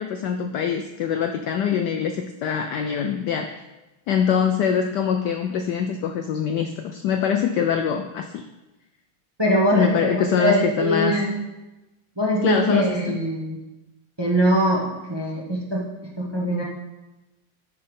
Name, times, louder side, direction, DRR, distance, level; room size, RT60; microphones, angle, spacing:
voice 1, 0.0-3.6 4.1-8.4 9.7-11.2 12.4-13.2, left 7 dB, 85° left, 5 dB, 0.9 m, -24 dB
voice 2, 9.4-11.3 12.2-13.6 14.2-15.8 16.2-16.6, equal, 20° right, -3 dB, 0.8 m, -22 dB
11.0 x 4.5 x 5.3 m, 1.1 s
omnidirectional pair, 2.4 m